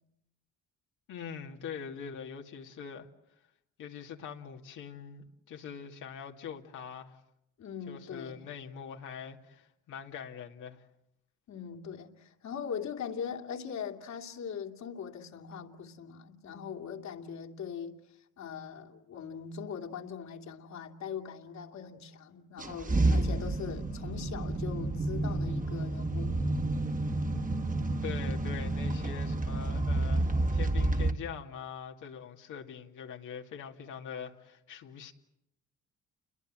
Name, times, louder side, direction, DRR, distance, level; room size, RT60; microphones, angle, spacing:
voice 1, 1.1-3.1 3.8-7.2 7.9-10.8 28.0-35.1, left 7 dB, 80° left, 2.5 m, -43 dB
voice 2, 7.6-8.5 11.5-18.0 18.4-26.4, left 7 dB, 65° left, 2.9 m, -41 dB
sound 1, 22.6-31.1, right 2 dB, 25° right, 2.0 m, -30 dB
29.5 x 22.0 x 7.6 m
cardioid pair, 90°, 30 cm